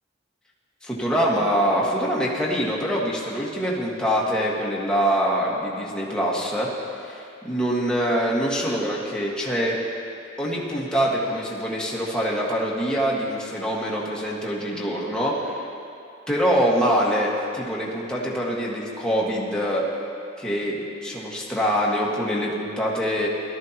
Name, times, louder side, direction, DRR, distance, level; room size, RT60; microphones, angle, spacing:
voice 1, 0.8-6.7 7.0-9.8 10.4-15.7 16.3-19.8 20.4-23.3, equal, 5° left, -5 dB, 1.6 m, -24 dB
17.5 x 13.0 x 2.9 m, 2.5 s
head